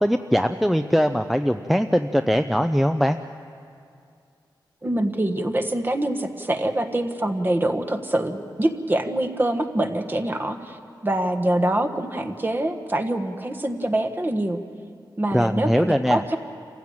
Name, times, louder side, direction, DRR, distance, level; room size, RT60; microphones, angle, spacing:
voice 1, 0.0-3.2 15.3-16.2, equal, ahead, 6 dB, 0.5 m, -21 dB
voice 2, 4.8-14.6 15.2-16.4, right 1 dB, 25° right, 6 dB, 1.4 m, -25 dB
28.0 x 15.5 x 8.8 m, 2.4 s
wide cardioid pair, 120°, 8 cm